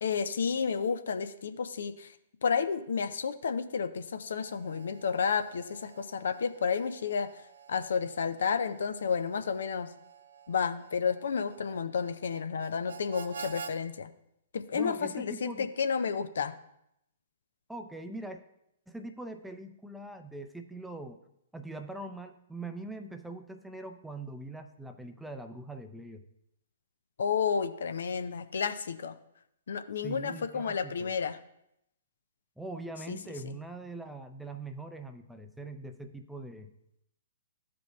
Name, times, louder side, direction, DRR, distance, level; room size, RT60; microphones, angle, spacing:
voice 1, 0.0-2.1 2.4-7.3 7.7-9.9 10.5-14.1 14.5-16.5 27.2-29.2 29.7-31.4 33.1-33.2, left 6 dB, 70° left, 11 dB, 0.4 m, -31 dB
Harmonica, 4.2-13.8, right 6 dB, 70° right, 0.6 m, -49 dB
voice 2, 14.7-15.7 17.7-18.4 18.9-21.2 21.5-26.2 30.0-31.1 32.6-36.7, right 2 dB, 5° right, 7 dB, 0.5 m, -42 dB
13.5 x 5.1 x 2.3 m, 0.79 s
figure-of-eight pair, 120°, 0 cm